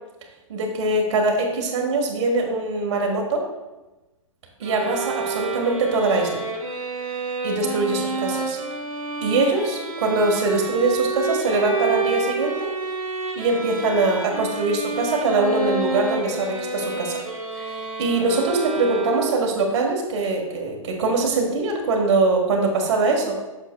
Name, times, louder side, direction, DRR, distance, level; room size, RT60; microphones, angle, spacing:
voice 1, 0.5-3.5 4.6-6.4 7.4-8.6 9.2-12.7 13.4-17.2 17.6-23.4, right 3 dB, 55° right, 1 dB, 1.8 m, -22 dB
sound 1, 4.6-19.6, right 3 dB, 90° right, 1.4 m, -29 dB
8.1 x 6.8 x 2.4 m, 1.1 s
figure-of-eight pair, 115°, 17 cm